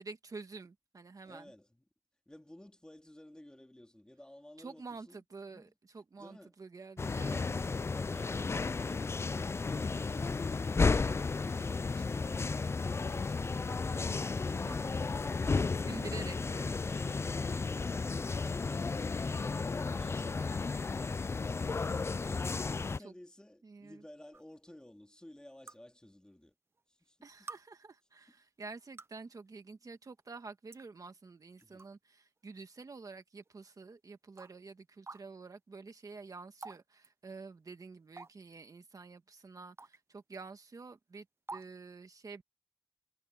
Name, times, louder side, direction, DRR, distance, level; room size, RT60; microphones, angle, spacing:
voice 1, 0.0-1.5 4.6-7.5 14.1-14.3 14.7-14.8 15.8-16.8 23.0-23.1 23.6-24.0 27.2-42.4, right 4 dB, 45° right, 1.9 m, -49 dB
voice 2, 1.2-1.9 2.3-5.6 6.1-6.5 7.9-16.2 16.8-19.6 22.5-26.5 26.9-27.5 28.3-28.4 31.6-31.9, left 1 dB, 10° left, 2.5 m, -54 dB
sound 1, 7.0-23.0, left 4 dB, 30° left, 0.4 m, -33 dB
sound 2, 24.3-24.4 25.7-25.8 26.8-26.9 27.5-27.6 28.7-29.2 30.2-30.3 30.7-30.8 31.6-31.9 32.4-32.5 33.4-33.5 34.4-34.5 35.1-35.2 36.6-36.8 37.0-37.1 38.2-38.5 39.8-40.0 40.3-40.4 41.5-41.7, right 3 dB, 30° right, 0.8 m, -47 dB
wide cardioid pair, 105°, 8 cm